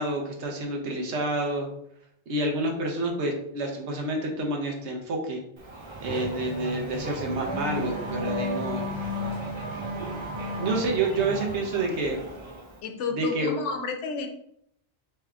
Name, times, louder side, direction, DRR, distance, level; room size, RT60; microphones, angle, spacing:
voice 1, 0.0-1.7 2.3-5.4 6.0-8.9 10.6-12.2 13.2-13.6, right 2 dB, 75° right, 1 dB, 1.2 m, -28 dB
Race car auto racing / Accelerating revving vroom, 5.6-12.8, equal, 30° right, 0.6 m, -34 dB
voice 2, 12.8-14.3, left 4 dB, 85° left, 5 dB, 1.0 m, -31 dB
3.4 x 3.4 x 3.6 m, 0.73 s
omnidirectional pair, 1.2 m